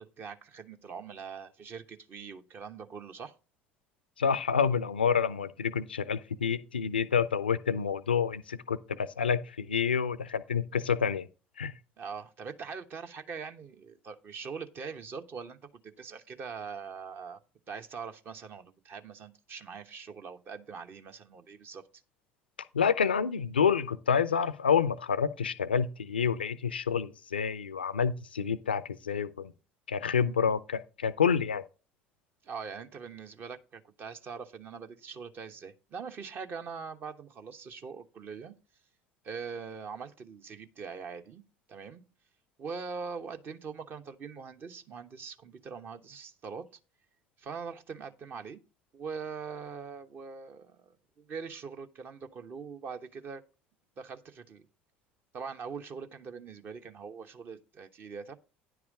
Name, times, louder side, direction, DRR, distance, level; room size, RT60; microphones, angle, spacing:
voice 1, 0.0-3.3 12.0-17.4 17.7-21.8 32.4-38.5 39.2-41.4 41.7-42.0 42.6-46.7 47.4-48.6 48.9-53.4 54.0-54.7 55.3-58.4, right 5 dB, 40° right, 1.1 m, -42 dB
voice 2, 4.2-11.3 11.6-11.7 22.7-29.5 29.9-31.6, left 7 dB, 80° left, 0.5 m, -28 dB
10.5 x 4.8 x 4.9 m
figure-of-eight pair, 60°, 5 cm